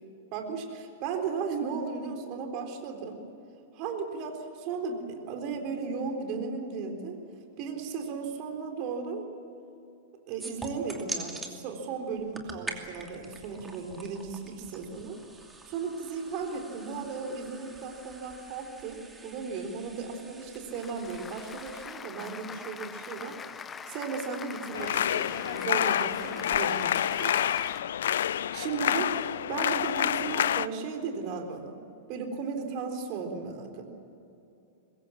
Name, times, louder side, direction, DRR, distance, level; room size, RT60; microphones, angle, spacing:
voice 1, 0.3-3.2 3.7-7.2 7.6-9.3 10.3-15.2 15.7-23.4 23.9-27.3 28.4-31.8 32.1-33.8, right 5 dB, 40° right, 4 dB, 3.9 m, -35 dB
sound 1, 10.4-11.5 12.1-21.9, right 2 dB, 10° right, 2.6 m, -44 dB
Applause, 20.4-27.8, left 6 dB, 20° left, 0.9 m, -43 dB
sound 2, 24.7-30.7, left 10 dB, 65° left, 0.5 m, -28 dB
24.0 x 21.0 x 7.3 m, 2.8 s
figure-of-eight pair, 100°, 0 cm